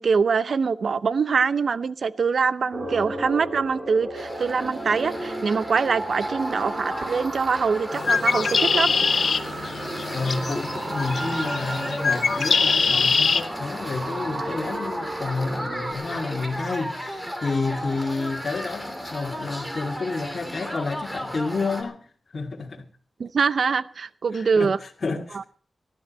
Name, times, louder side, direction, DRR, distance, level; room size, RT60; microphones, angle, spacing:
voice 1, 0.0-8.9 23.2-24.8 25.3-25.4, right 5 dB, 70° right, 0.7 m, -24 dB
sound 1, 2.7-15.9, right 1 dB, 45° right, 4.0 m, -34 dB
sound 2, 4.1-21.8, equal, 5° right, 3.3 m, -35 dB
Bird, 7.9-13.4, left 5 dB, 70° left, 0.9 m, -23 dB
voice 2, 10.1-22.8 24.3-25.4, left 3 dB, 55° left, 2.3 m, -30 dB
19.0 x 12.5 x 4.3 m
cardioid pair, 65°, 0 cm